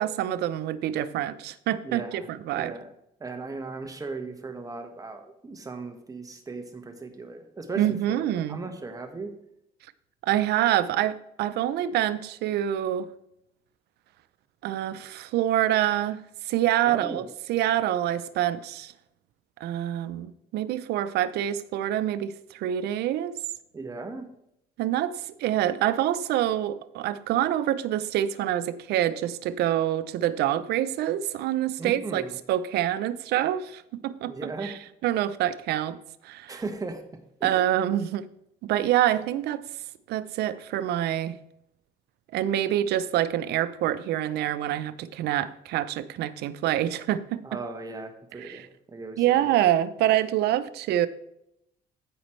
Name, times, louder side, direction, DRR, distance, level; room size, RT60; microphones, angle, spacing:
voice 1, 0.0-2.7 7.8-8.6 10.2-13.1 14.6-18.9 19.6-23.4 24.8-32.2 32.5-36.0 36.2-36.6 37.4-38.3 38.6-39.6 40.1-41.4 42.3-47.6 48.4-48.7 49.2-51.1, right 12 dB, 80° right, 14 dB, 0.6 m, -26 dB
voice 2, 1.8-2.3 2.5-2.9 3.2-8.2 8.5-9.3 16.8-17.2 23.7-24.3 31.8-32.3 34.3-34.8 36.5-37.0 37.4-37.5 47.4-49.5, right 3 dB, 20° right, 5 dB, 1.4 m, -37 dB
15.0 x 5.2 x 3.2 m, 0.80 s
cardioid pair, 110°, 17 cm